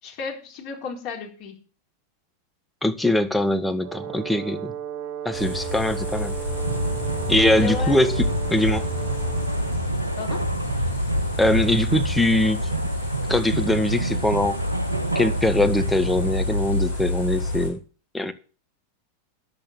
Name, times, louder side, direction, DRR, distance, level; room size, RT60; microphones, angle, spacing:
voice 1, 0.0-1.6 7.5-8.0 10.2-10.4, left 6 dB, 45° left, 4.2 m, -33 dB
voice 2, 2.8-4.7 5.2-6.3 7.3-8.2 8.5-8.9 11.4-12.6 13.3-14.6 15.1-17.8 18.1-18.3, left 1 dB, 5° left, 1.1 m, -22 dB
Brass instrument, 3.8-9.8, right 9 dB, 45° right, 0.8 m, -35 dB
sound 1, 5.3-17.7, left 1 dB, 85° left, 7.5 m, -27 dB
sound 2, 6.6-17.0, right 3 dB, 85° right, 0.8 m, -31 dB
10.5 x 7.6 x 7.6 m
figure-of-eight pair, 90°, 0 cm